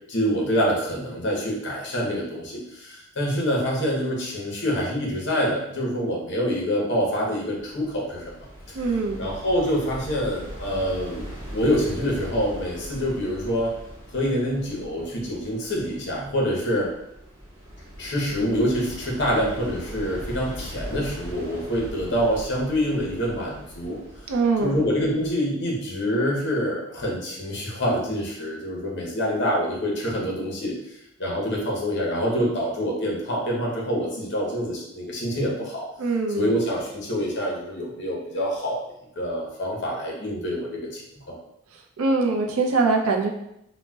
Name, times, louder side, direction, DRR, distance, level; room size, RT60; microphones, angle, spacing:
voice 1, 0.1-8.3 9.2-13.7 14.1-16.9 18.0-24.0 24.6-30.7 31.2-35.8 36.3-38.8 39.2-41.4, equal, 55° left, -3 dB, 0.8 m, -26 dB
sound 1, 7.6-25.4, equal, 70° right, 1.0 m, -40 dB
voice 2, 8.7-9.2 24.3-24.7 36.0-36.5 42.0-43.3, right 3 dB, 85° right, 2 dB, 0.5 m, -22 dB
3.9 x 2.1 x 2.2 m, 0.81 s
head